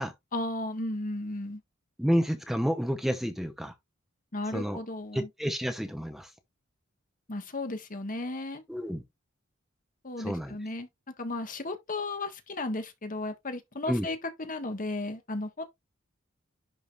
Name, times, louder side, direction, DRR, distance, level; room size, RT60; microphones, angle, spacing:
voice 1, 0.3-1.6 4.3-5.3 7.3-8.6 10.0-10.9 11.2-15.6, left 2 dB, 40° left, 1.6 m, -34 dB
voice 2, 2.0-3.7 4.5-4.8 5.1-6.3 8.7-9.0 10.2-10.6 13.9-14.1, equal, ahead, 0.9 m, -30 dB
11.0 x 5.1 x 2.5 m
head